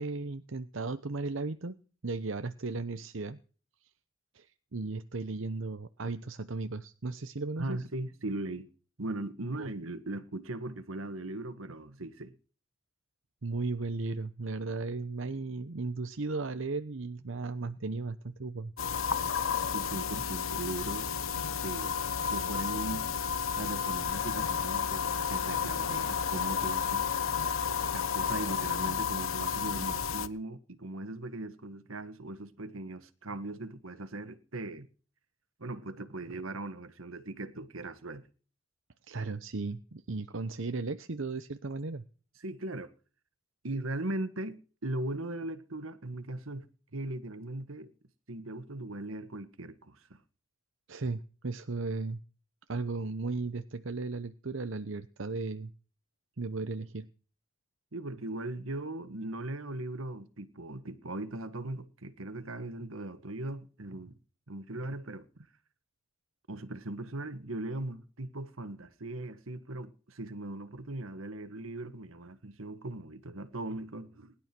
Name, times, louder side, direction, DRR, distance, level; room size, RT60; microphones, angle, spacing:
voice 1, 0.0-1.7 2.0-3.4 4.3-7.8 9.5-9.7 13.4-18.7 39.1-42.0 50.9-52.2 52.7-55.7 56.4-57.1, right 3 dB, 65° right, 0.9 m, -36 dB
voice 2, 7.6-8.7 9.0-12.3 19.7-21.1 21.4-21.9 22.3-23.1 23.6-27.1 27.9-34.9 35.6-38.2 42.4-42.9 43.6-46.6 46.9-47.9 48.3-50.2 57.9-64.2 64.5-65.3 66.5-74.3, right 2 dB, 85° right, 1.6 m, -39 dB
sound 1, 18.8-30.3, left 7 dB, 85° left, 1.1 m, -32 dB
20.0 x 12.0 x 6.1 m
head